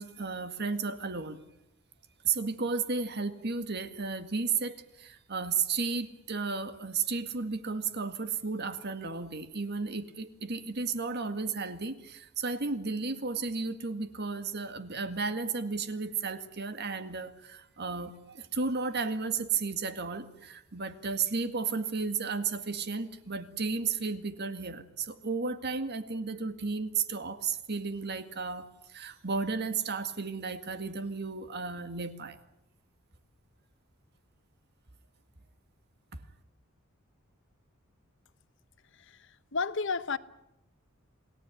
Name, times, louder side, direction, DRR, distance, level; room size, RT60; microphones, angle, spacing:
voice 1, 0.0-1.4 2.2-32.4, right 4 dB, 55° right, 2.0 m, -33 dB
voice 2, 38.9-40.2, left 4 dB, 60° left, 1.0 m, -33 dB
28.5 x 18.5 x 9.2 m
head